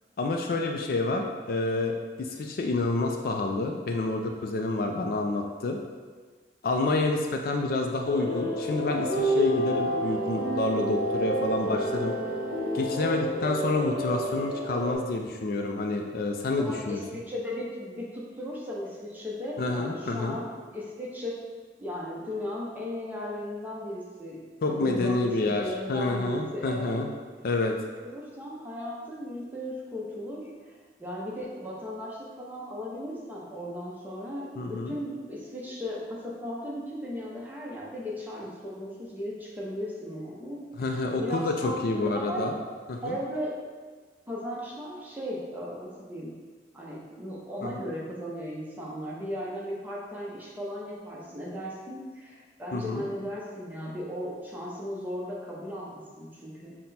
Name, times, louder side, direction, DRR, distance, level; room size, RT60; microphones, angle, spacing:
voice 1, 0.2-5.8 6.6-12.2 12.7-17.0 19.6-20.4 24.6-27.1 27.4-27.8 34.6-35.0 40.8-42.6 42.9-43.2 47.6-47.7 52.7-53.0, left 2 dB, 50° left, 2 dB, 0.4 m, -28 dB
sound 1, 8.0-14.9, right 1 dB, 30° left, 1.0 m, -29 dB
voice 2, 16.6-20.5 20.7-21.4 21.8-27.0 28.0-42.5 43.0-43.6 44.3-46.4 46.7-56.8, equal, 10° right, -4 dB, 0.7 m, -36 dB
5.8 x 2.2 x 4.1 m, 1.5 s
head